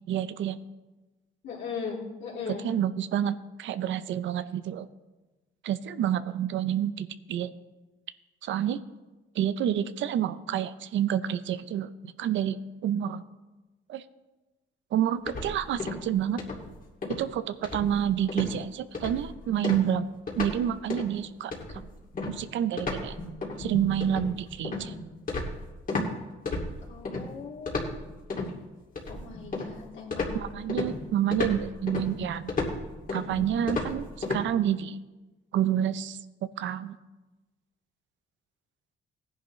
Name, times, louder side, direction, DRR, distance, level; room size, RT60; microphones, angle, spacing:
voice 1, 0.1-0.6 2.5-4.9 5.6-7.5 8.4-8.8 9.4-13.2 13.9-14.0 14.9-16.4 17.2-20.1 20.4-21.5 22.3-23.2 23.6-24.9 30.3-32.5 33.1-35.0 35.5-36.2 36.6-37.0, right 10 dB, 75° right, 13 dB, 0.6 m, -28 dB
voice 2, 1.4-2.7 26.9-27.8 29.1-30.4, left 5 dB, 70° left, -3 dB, 3.2 m, -38 dB
sound 1, 15.3-16.1 16.4-16.7 17.0-17.3 17.6-18.0 18.3-18.5 18.9-19.3 19.6-20.6 20.9-21.1 21.5-26.1 26.5-27.2 27.7-28.5 29.0-29.8 30.1-34.4, left 3 dB, 45° left, 2.4 m, -33 dB
16.5 x 10.5 x 3.2 m, 1.2 s
cardioid pair, 90°, 20 cm